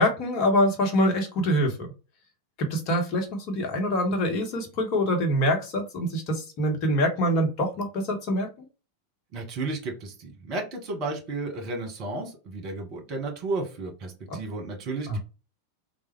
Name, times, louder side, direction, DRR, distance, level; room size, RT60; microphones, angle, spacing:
voice 1, 0.0-1.9 2.6-8.5 14.3-14.4 15.1-15.2, equal, 40° left, 3 dB, 1.1 m, -25 dB
voice 2, 9.3-15.2, right 3 dB, 35° right, 2 dB, 1.3 m, -33 dB
3.4 x 2.2 x 3.2 m, 0.31 s
figure-of-eight pair, 90°, 0 cm